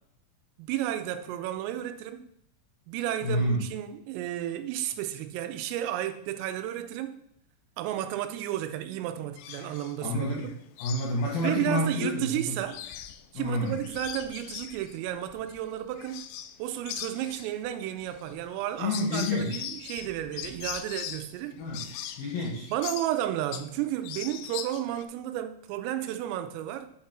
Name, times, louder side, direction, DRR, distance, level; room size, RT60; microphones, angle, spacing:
voice 1, 0.6-2.2 2.9-7.2 7.8-10.6 11.4-12.8 13.3-16.2 16.6-21.6 22.7-26.9, right 12 dB, 85° right, 3.3 m, -32 dB
voice 2, 3.2-3.6 10.0-10.5 10.8-12.6 13.3-13.8 18.8-19.6 21.6-21.9 22.2-22.7, left 1 dB, 70° left, 2.3 m, -29 dB
sound 1, 9.4-10.0 10.4-12.2 12.5-16.6 16.9-23.8 24.0-25.0, left 11 dB, 85° left, 2.6 m, -41 dB
8.6 x 4.4 x 5.9 m
omnidirectional pair, 5.8 m